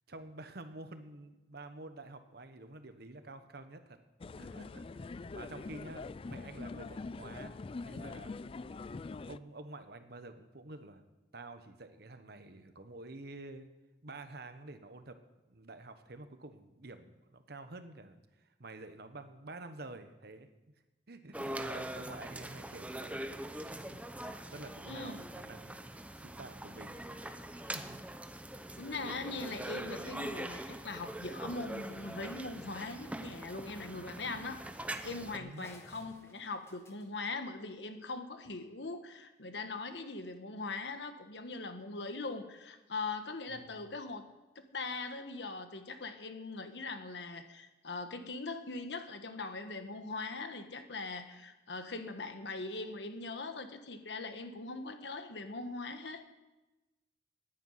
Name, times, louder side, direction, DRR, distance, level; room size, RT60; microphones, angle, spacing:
voice 1, 0.1-4.0 4.4-5.0 5.3-7.6 7.8-8.4 9.3-11.0 11.3-13.7 14.0-15.2 15.5-20.5 21.1-23.1 23.6-25.8 26.2-27.0 27.6-28.0 35.3-35.7 43.5-43.7, right 2 dB, 60° right, 9 dB, 1.2 m, -49 dB
sound 1, 4.2-9.4, left 3 dB, 30° left, 0.3 m, -44 dB
sound 2, 21.3-35.4, right 1 dB, 10° right, 0.7 m, -43 dB
voice 2, 24.8-25.2 28.8-34.6 35.0-44.3 44.5-56.3, left 3 dB, 75° left, 7 dB, 1.3 m, -41 dB
sound 3, 35.5-38.2, left 1 dB, 15° left, 1.5 m, -61 dB
10.5 x 9.7 x 9.6 m, 1.1 s
head